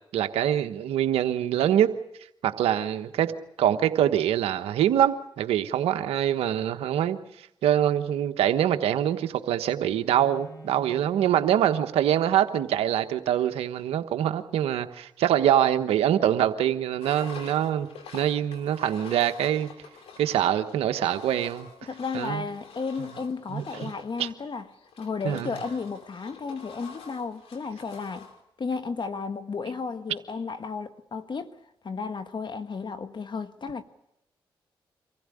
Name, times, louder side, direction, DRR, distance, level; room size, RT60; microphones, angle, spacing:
voice 1, 0.1-1.9 2.4-3.3 3.6-7.2 7.6-17.9 18.1-19.7 20.2-21.7 22.1-22.4 23.5-23.9 24.2-24.3 25.2-25.6, right 10 dB, 85° right, 1.2 m, -24 dB
Bowed string instrument, 10.1-13.1, right 3 dB, 35° left, 7.8 m, -49 dB
Engine, 17.0-28.4, left 5 dB, 80° left, 2.9 m, -47 dB
voice 2, 21.9-24.7 25.0-28.3 28.6-31.6 31.8-33.8, left 4 dB, 50° left, 1.4 m, -33 dB
25.0 x 15.5 x 9.9 m
supercardioid pair, 45°, 10 cm